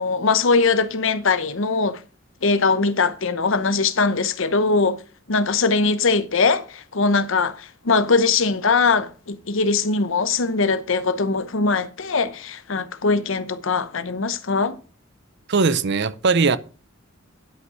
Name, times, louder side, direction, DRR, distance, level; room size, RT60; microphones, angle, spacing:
voice 1, 0.0-2.0 2.4-5.0 5.3-14.8, left 4 dB, 65° left, 0.8 m, -21 dB
voice 2, 15.5-16.6, right 4 dB, 55° right, 0.7 m, -19 dB
11.0 x 5.5 x 6.0 m
head